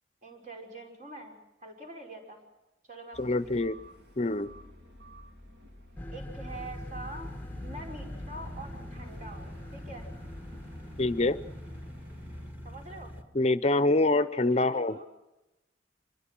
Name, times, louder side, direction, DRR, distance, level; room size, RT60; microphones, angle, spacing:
voice 1, 0.2-2.4 2.9-3.6 6.1-10.1 12.6-13.1 14.1-15.1, right 2 dB, 45° right, 1 dB, 5.6 m, -45 dB
sound 1, 3.1-12.5, left 1 dB, 75° right, 3.5 m, -49 dB
voice 2, 3.2-3.8 4.2-4.5 11.0-11.4 13.3-15.0, left 2 dB, 40° left, 13 dB, 0.7 m, -25 dB
sound 2, 6.0-11.9, left 1 dB, 10° left, 0.9 m, -44 dB
sound 3, 6.5-13.2, left 1 dB, 10° right, 1.9 m, -46 dB
25.5 x 21.5 x 6.1 m, 0.97 s
head